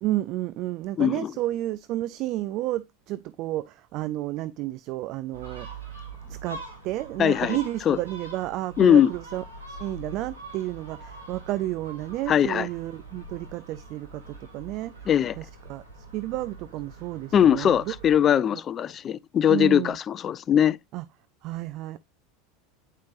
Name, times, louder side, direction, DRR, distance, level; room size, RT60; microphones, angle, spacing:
voice 1, 0.0-5.9 6.3-15.1 15.4-17.9 18.5-18.6 19.5-20.0 20.9-21.0 21.4-22.0, right 15 dB, 50° right, 0.5 m, -31 dB
voice 2, 1.0-1.3 7.2-7.6 7.9-8.0 8.8-9.1 12.3-12.7 15.1-15.3 17.3-20.8, left 9 dB, 35° left, 0.4 m, -20 dB
Gull seagull, 5.3-18.2, right 3 dB, 80° right, 3.1 m, -43 dB
9.3 x 5.2 x 2.5 m
figure-of-eight pair, 80°, 0 cm